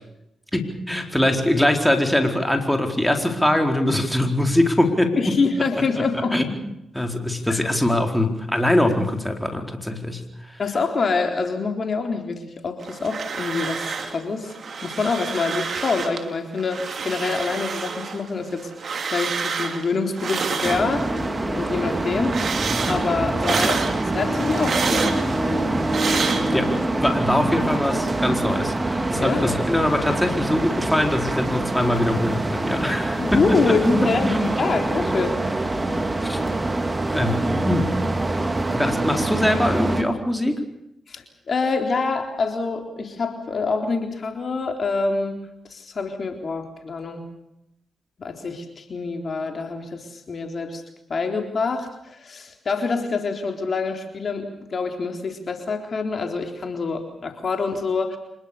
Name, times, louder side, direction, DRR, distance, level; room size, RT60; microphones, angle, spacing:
voice 1, 0.5-5.4 6.3-10.2 10.5-10.6 26.3-34.5 36.2-36.4 37.1-38.0 38.7-40.6, left 1 dB, 5° left, 4 dB, 4.4 m, -22 dB
voice 2, 5.2-6.4 7.5-7.7 10.6-14.5 14.8-21.0 21.5-22.4 22.9-25.6 29.2-29.6 33.2-35.4 41.1-45.4 45.7-47.3 48.2-50.8 51.1-58.2, left 4 dB, 55° left, 4 dB, 3.8 m, -26 dB
sound 1, 12.8-14.2 14.5-16.2 16.6-21.3 21.7-26.9, right 5 dB, 60° right, 3.0 m, -29 dB
sound 2, 20.6-40.0, right 2 dB, 25° right, 3.0 m, -25 dB
26.0 x 21.5 x 6.9 m, 0.82 s
hypercardioid pair, 40°, 0 cm